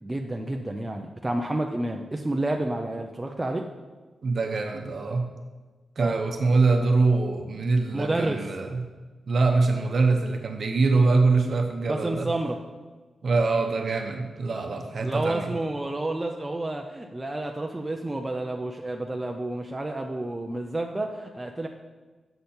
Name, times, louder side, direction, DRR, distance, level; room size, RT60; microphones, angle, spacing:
voice 1, 0.0-3.7 6.0-6.6 7.9-8.5 11.9-12.6 15.0-21.7, right 2 dB, 15° right, 2 dB, 0.4 m, -30 dB
voice 2, 4.2-5.3 6.0-8.8 9.3-12.3 13.2-15.5, right 3 dB, 45° right, 3 dB, 0.7 m, -24 dB
8.1 x 6.7 x 4.3 m, 1.3 s
wide cardioid pair, 175°, 0 cm